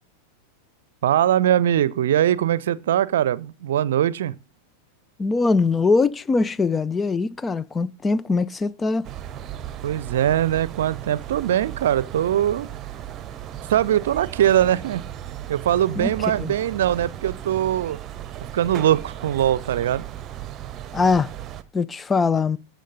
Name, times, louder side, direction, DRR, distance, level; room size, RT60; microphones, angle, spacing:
voice 1, 1.0-4.3 9.8-12.7 13.7-15.0 15.5-18.0 18.5-20.0, right 11 dB, 60° right, 0.6 m, -21 dB
voice 2, 5.2-9.1 16.0-16.1 16.4-16.5 20.9-21.3 21.7-22.6, left 4 dB, 15° left, 0.5 m, -22 dB
sound 1, 9.0-21.6, right 11 dB, 30° right, 0.9 m, -36 dB
17.5 x 6.4 x 4.0 m
figure-of-eight pair, 90°, 0 cm